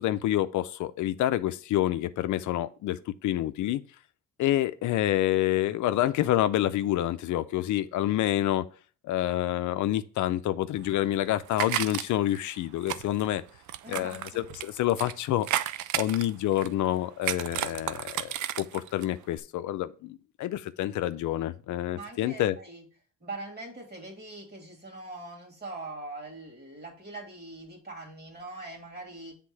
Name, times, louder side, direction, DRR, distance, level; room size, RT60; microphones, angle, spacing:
voice 1, 0.0-3.8 4.4-8.6 9.0-13.4 13.9-15.5 15.9-18.3 18.6-22.6, left 13 dB, 75° left, 0.5 m, -28 dB
sound 1, 10.8-12.4 12.8-15.1 15.4-16.9 17.2-19.0 19.3-19.4, right 12 dB, 75° right, 0.5 m, -33 dB
voice 2, 13.8-14.4 21.9-22.9 23.2-29.4, right 2 dB, 35° right, 2.5 m, -42 dB
7.7 x 3.6 x 4.6 m
cardioid pair, 90°, 30 cm